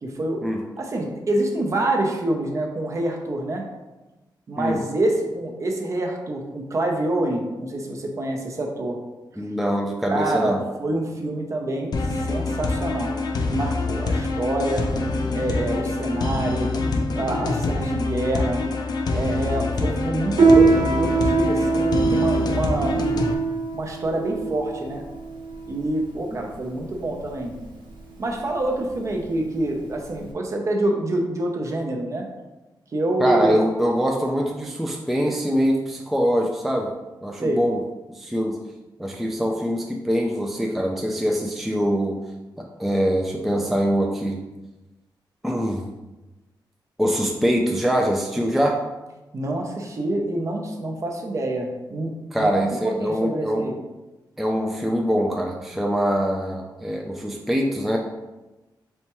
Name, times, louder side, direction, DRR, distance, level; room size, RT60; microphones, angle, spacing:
voice 1, 0.0-0.4 0.8-3.6 4.5-9.0 10.1-13.2 13.5-14.8 15.3-16.7 17.1-18.6 19.1-23.0 23.7-25.0 25.7-27.6 28.2-32.3 32.9-33.6 37.4-37.6 49.3-52.1 52.4-53.8, right 1 dB, 40° right, 1 dB, 0.6 m, -26 dB
voice 2, 9.4-10.6 26.3-26.4 33.2-36.9 37.2-37.8 38.1-38.6 39.0-42.2 42.6-44.4 45.4-45.9 47.0-48.8 52.3-53.6 54.4-58.0, equal, ahead, 0 dB, 0.3 m, -23 dB
sound 1, 11.9-23.3, left 3 dB, 60° left, 0.4 m, -25 dB
Piano, 20.3-30.3, right 4 dB, 80° right, 1.1 m, -22 dB
4.3 x 3.4 x 3.0 m, 1.1 s
wide cardioid pair, 150°, 8 cm